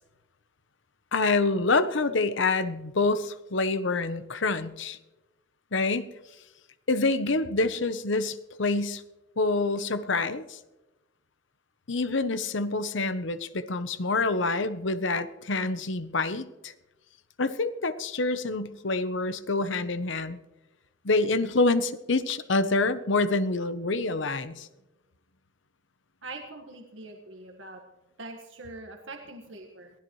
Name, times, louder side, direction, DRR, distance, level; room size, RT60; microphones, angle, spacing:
voice 1, 1.1-5.0 5.7-6.1 6.9-9.0 9.4-10.6 11.9-16.7 17.4-20.4 21.0-24.7, left 3 dB, 70° left, 12 dB, 0.9 m, -27 dB
voice 2, 26.2-27.8 28.2-29.9, right 2 dB, 75° right, 3 dB, 1.6 m, -43 dB
22.5 x 16.0 x 3.2 m, 1.0 s
head